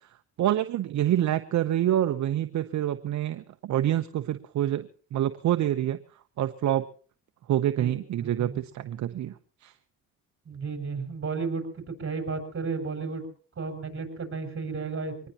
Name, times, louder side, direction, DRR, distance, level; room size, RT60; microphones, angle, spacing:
voice 1, 0.4-6.0 6.4-6.8 7.5-9.3 9.6-9.7, right 12 dB, 70° right, 9 dB, 1.0 m, -27 dB
voice 2, 8.2-8.6 10.4-13.2 13.6-15.3, right 4 dB, 45° right, 6 dB, 6.3 m, -33 dB
24.0 x 19.0 x 3.0 m, 0.42 s
cardioid pair, 90°, 30 cm